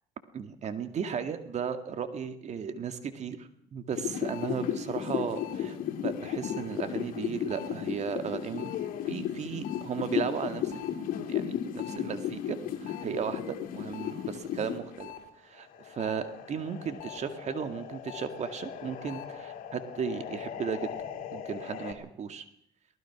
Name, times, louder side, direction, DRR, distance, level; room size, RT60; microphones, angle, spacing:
voice 1, 0.3-5.8 6.0-8.7 9.1-10.8 11.2-15.1 15.4-20.8 21.3-22.5, right 7 dB, 45° right, 9 dB, 2.1 m, -35 dB
sound 1, 3.9-15.2 15.6-21.9, left 9 dB, 65° left, 3.1 m, -36 dB
23.0 x 19.0 x 6.1 m, 0.68 s
supercardioid pair, 85°, 16 cm